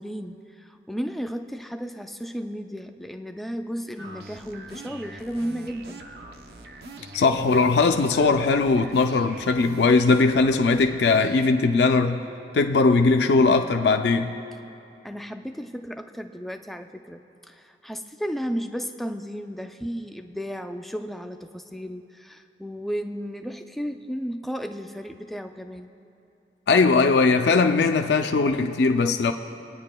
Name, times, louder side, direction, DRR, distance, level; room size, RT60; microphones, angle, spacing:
voice 1, 0.0-6.0 15.0-25.9, equal, ahead, 6 dB, 0.3 m, -34 dB
sound 1, 4.0-11.5, right 2 dB, 60° right, 0.6 m, -43 dB
voice 2, 7.1-12.2 12.5-14.4 26.7-29.3, left 4 dB, 70° left, 6 dB, 0.4 m, -20 dB
25.0 x 9.3 x 2.2 m, 2.7 s
head